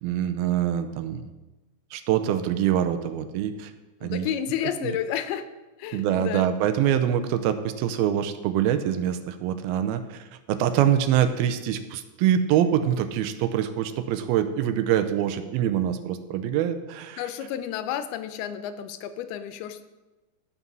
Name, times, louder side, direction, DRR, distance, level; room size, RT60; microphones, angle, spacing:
voice 1, 0.0-1.3 1.9-3.7 4.0-4.3 4.8-5.0 5.9-17.2, right 10 dB, 85° right, 10 dB, 2.5 m, -25 dB
voice 2, 4.0-5.5 5.8-6.5 17.2-19.8, left 10 dB, 90° left, 10 dB, 2.7 m, -31 dB
15.0 x 5.3 x 6.1 m, 1.1 s
omnidirectional pair, 4.4 m